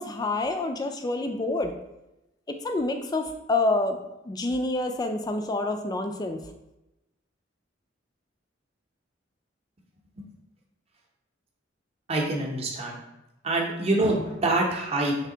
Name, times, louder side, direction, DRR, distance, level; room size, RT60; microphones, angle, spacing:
voice 1, 0.0-1.7 2.6-4.0 4.2-6.4, left 2 dB, 20° left, 6 dB, 0.3 m, -27 dB
voice 2, 12.1-13.0 13.4-15.1, right 2 dB, 30° right, -1 dB, 0.7 m, -25 dB
3.3 x 2.8 x 3.8 m, 0.92 s
head